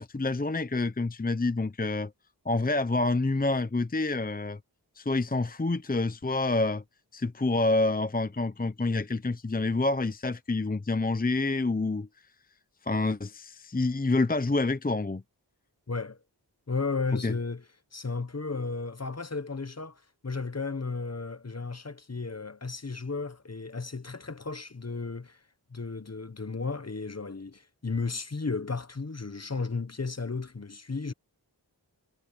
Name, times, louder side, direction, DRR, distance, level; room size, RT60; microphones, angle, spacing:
voice 1, 0.0-2.1 2.5-4.6 5.0-6.8 7.1-12.1 12.8-15.2 17.2-17.3, left 2 dB, 20° left, 0.7 m, -27 dB
voice 2, 15.9-16.2 16.7-17.6 17.9-25.4 25.7-31.1, left 4 dB, 35° left, 1.1 m, -34 dB
wide cardioid pair, 40°, 42 cm